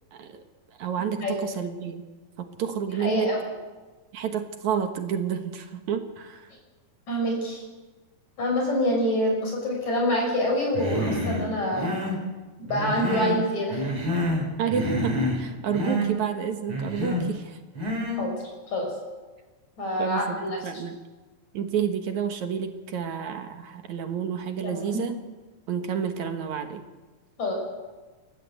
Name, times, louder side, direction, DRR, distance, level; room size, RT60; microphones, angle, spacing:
voice 1, 0.1-0.4 0.8-2.0 2.4-3.3 4.1-6.5 14.6-17.6 20.0-20.4 20.6-21.0 21.5-25.1 25.7-26.8, right 8 dB, 60° right, 7 dB, 2.5 m, -30 dB
voice 2, 3.0-3.4 7.1-7.6 8.4-12.0 12.6-13.9 18.2-18.3 18.7-18.9 19.8-20.6 24.6-25.0 27.4-27.5, equal, 50° left, 0 dB, 7.4 m, -26 dB
Human voice, 10.7-11.4 11.7-12.2 12.7-13.4 13.7-14.5 14.7-15.4 15.7-16.1 16.7-17.3 17.8-18.2, left 1 dB, 35° right, 5.8 m, -28 dB
29.0 x 14.0 x 8.2 m, 1.3 s
omnidirectional pair, 4.1 m